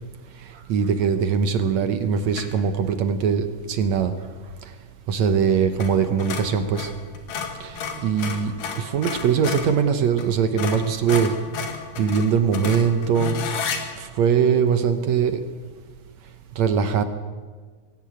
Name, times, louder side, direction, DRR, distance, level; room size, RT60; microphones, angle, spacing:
voice 1, 0.7-4.1 5.1-6.9 7.6-11.3 12.0-13.4 14.0-15.4 16.6-17.0, right 7 dB, 65° right, 9 dB, 2.0 m, -21 dB
sound 1, 2.3-2.6 5.7-5.9 6.2-9.7 10.2-10.3 10.6-13.8, left 6 dB, 80° left, 3.7 m, -31 dB
22.0 x 17.0 x 8.7 m, 1.5 s
omnidirectional pair, 3.8 m